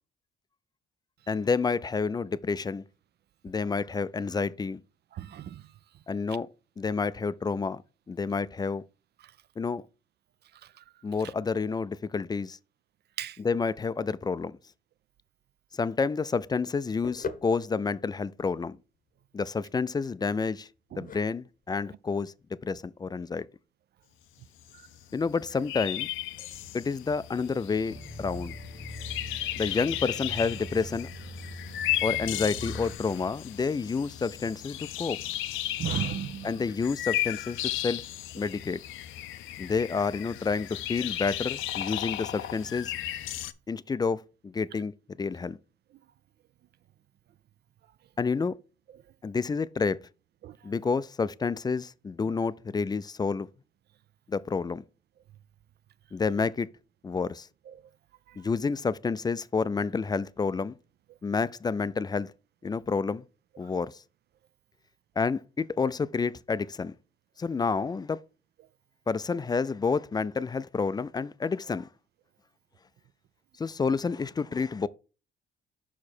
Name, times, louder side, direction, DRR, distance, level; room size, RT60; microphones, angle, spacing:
voice 1, 1.3-2.8 3.4-4.8 6.1-6.5 6.8-7.8 8.1-8.8 9.6-9.9 11.0-12.6 13.4-14.6 15.7-18.8 19.3-20.7 21.0-22.3 22.6-23.5 25.1-26.1 26.7-28.5 29.6-31.1 32.0-35.2 36.4-38.0 38.3-38.8 39.6-42.9 43.7-44.9 45.2-45.6 48.2-48.6 49.2-50.0 50.6-53.5 54.3-54.8 56.1-56.7 57.0-57.5 58.4-60.7 61.2-62.3 62.6-63.2 63.6-64.0 65.2-66.9 67.4-68.2 69.1-71.9 73.6-74.9, left 4 dB, 20° left, 0.3 m, -29 dB
voice 2, 5.1-5.6 13.2-13.4 20.9-21.1 35.8-36.5 50.4-50.5, right 11 dB, 55° right, 0.4 m, -34 dB
sound 1, 15.7-23.6, left 4 dB, 45° left, 0.8 m, -45 dB
sound 2, 24.7-24.8 25.0-25.1 25.3-43.5, left 13 dB, 85° left, 0.5 m, -35 dB
sound 3, 27.9-32.9, equal, 30° right, 1.6 m, -42 dB
5.9 x 4.8 x 4.3 m
cardioid pair, 90°, 20 cm